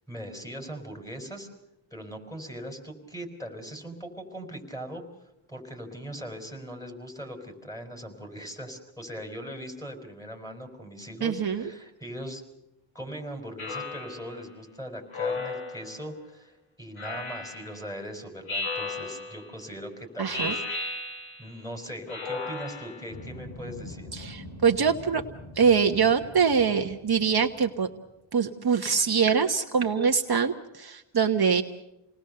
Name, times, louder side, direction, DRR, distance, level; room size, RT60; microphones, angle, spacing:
voice 1, 0.1-1.5 1.9-5.0 5.5-12.4 12.9-21.1 21.4-24.1, equal, 5° left, 3 dB, 5.0 m, -40 dB
voice 2, 11.2-11.7 20.2-20.6 24.1-25.2 25.5-27.9 28.3-31.6, right 6 dB, 50° right, 4 dB, 1.2 m, -24 dB
Speech synthesizer, 13.6-14.4 15.1-16.0 17.0-17.8 18.5-19.5 20.3-21.5 22.1-23.1, left 3 dB, 80° left, 3.8 m, -34 dB
sound 1, 23.1-28.1, left 2 dB, 60° left, 4.2 m, -44 dB
28.5 x 19.5 x 6.7 m, 0.90 s
wide cardioid pair, 95°, 48 cm